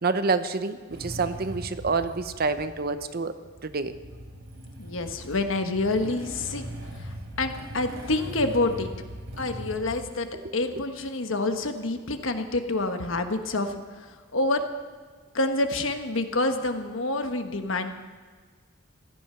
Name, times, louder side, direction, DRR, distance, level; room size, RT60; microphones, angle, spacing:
voice 1, 0.0-3.4 3.6-3.9, right 4 dB, 50° right, 11 dB, 0.8 m, -27 dB
Motorcycle / Engine starting, 0.9-10.0, equal, 80° right, 3.4 m, -40 dB
voice 2, 4.8-6.7 7.0-8.9 9.4-10.3 10.5-14.6 15.3-17.9, left 2 dB, 70° left, 7 dB, 1.3 m, -27 dB
16.0 x 13.0 x 5.7 m, 1.5 s
head